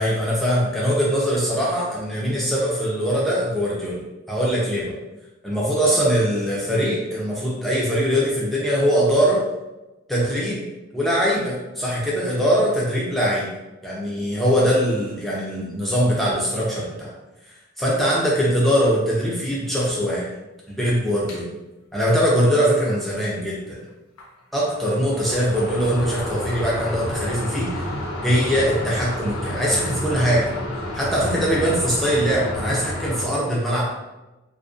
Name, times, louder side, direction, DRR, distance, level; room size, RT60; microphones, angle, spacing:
voice 1, 0.0-4.9 5.4-9.4 10.1-10.6 10.9-13.5 13.8-17.1 17.8-20.3 20.7-21.5 21.9-23.8 24.5-27.9 28.2-30.5 30.9-33.9, equal, ahead, -6 dB, 0.4 m, -22 dB
sound 1, 21.3-21.4 24.2-24.3 24.6-33.3, left 1 dB, 75° left, 0.5 m, -30 dB
2.4 x 2.1 x 2.4 m, 1.0 s
head